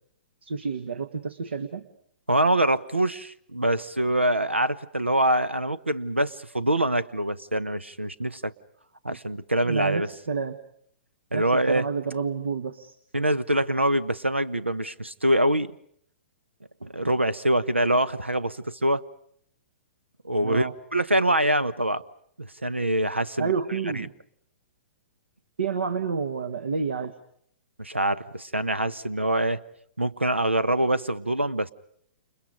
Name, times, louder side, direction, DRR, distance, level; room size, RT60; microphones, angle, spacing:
voice 1, 0.4-1.9 9.1-9.2 9.6-10.6 11.3-13.0 20.4-20.7 23.4-24.1 25.6-27.1, right 5 dB, 70° right, 11 dB, 1.6 m, -29 dB
voice 2, 2.3-8.5 9.0-10.1 11.3-11.8 13.1-15.7 16.8-19.0 20.2-22.0 22.4-23.5 23.9-24.1 27.8-29.6 30.0-31.7, right 1 dB, 90° right, 18 dB, 1.0 m, -24 dB
30.0 x 29.0 x 5.1 m, 0.67 s
figure-of-eight pair, 115°, 6 cm